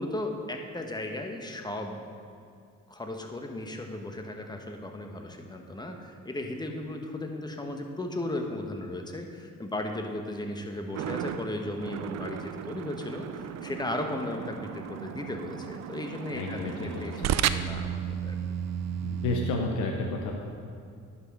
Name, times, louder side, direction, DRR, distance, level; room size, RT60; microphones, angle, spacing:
voice 1, 0.0-2.0 2.9-18.4, left 1 dB, 15° left, 3 dB, 1.1 m, -36 dB
sound 1, 10.9-19.6, right 9 dB, 60° right, 0.5 m, -34 dB
voice 2, 16.3-17.4 19.0-20.3, left 3 dB, 85° left, 1 dB, 1.0 m, -31 dB
11.0 x 5.9 x 5.3 m, 2.4 s
cardioid pair, 90°, 30 cm